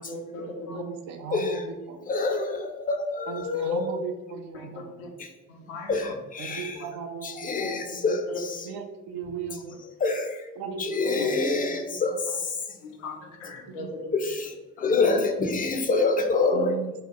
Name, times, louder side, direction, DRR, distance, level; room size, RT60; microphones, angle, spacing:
voice 1, 0.0-0.8 4.5-4.7 5.0-5.1 5.5-6.1 6.7-6.9 7.6-8.4 10.7-10.8 11.1-11.3 12.7-14.3 14.8-15.0, left 3 dB, 75° left, 2 dB, 0.6 m, -39 dB
voice 2, 0.7-2.2 3.3-4.9 6.4-8.2 8.6-9.7 10.6-12.0 13.7-13.9 16.5-17.0, right 6 dB, 55° right, 5 dB, 0.5 m, -37 dB
voice 3, 1.3-1.6 2.1-3.8 5.9-6.8 7.2-8.2 10.0-10.5 10.8-12.6 14.1-14.3 14.8-16.7, left 3 dB, 20° left, 5 dB, 0.5 m, -26 dB
2.9 x 2.4 x 3.8 m, 1.1 s
figure-of-eight pair, 40°, 40 cm